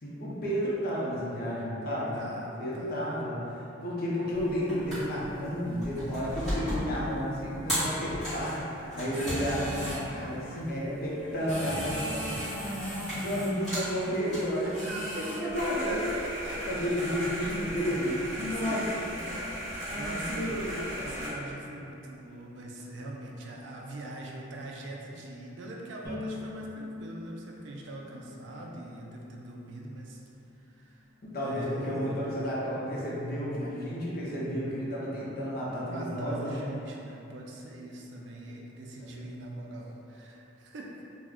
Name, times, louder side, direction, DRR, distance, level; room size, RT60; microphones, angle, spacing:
voice 1, 0.0-2.2 2.6-3.4 3.8-8.6 8.9-12.3 12.8-14.6 15.3-16.0 16.7-18.8 19.9-21.2 31.3-36.6 39.0-39.1, equal, 50° left, -6 dB, 0.5 m, -32 dB
voice 2, 2.1-3.2 14.6-16.9 18.4-20.6 21.0-30.2 30.5-32.1 35.8-40.9, right 1 dB, 65° right, -2 dB, 0.3 m, -42 dB
sound 1, 4.4-21.3, equal, ahead, 1.2 m, -36 dB
Bowed string instrument, 26.0-29.3, left 3 dB, 50° right, 0.7 m, -42 dB
2.3 x 2.1 x 3.4 m, 2.9 s
head